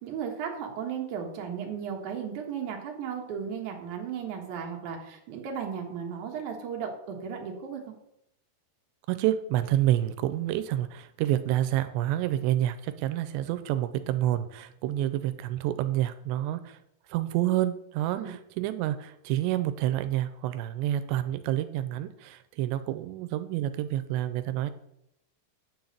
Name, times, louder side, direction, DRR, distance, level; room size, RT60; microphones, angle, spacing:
voice 1, 0.0-7.9 18.2-18.3, right 7 dB, 60° right, 1 dB, 2.4 m, -35 dB
voice 2, 9.1-16.8 17.1-24.7, right 13 dB, 90° right, 12 dB, 2.8 m, -28 dB
9.5 x 3.9 x 7.2 m, 0.77 s
omnidirectional pair, 4.9 m